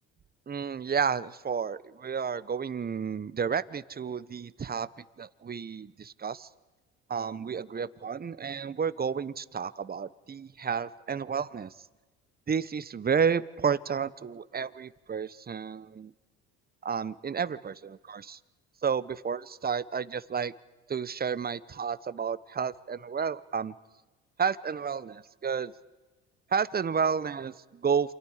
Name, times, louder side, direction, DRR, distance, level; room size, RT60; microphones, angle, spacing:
voice 1, 0.5-6.5 7.1-11.7 12.5-16.1 16.8-18.4 18.8-20.5 20.9-23.7 24.4-25.7 26.5-28.1, right 6 dB, 30° right, 17 dB, 1.1 m, -31 dB
29.0 x 27.0 x 5.0 m, 1.2 s
supercardioid pair, 70°, 32 cm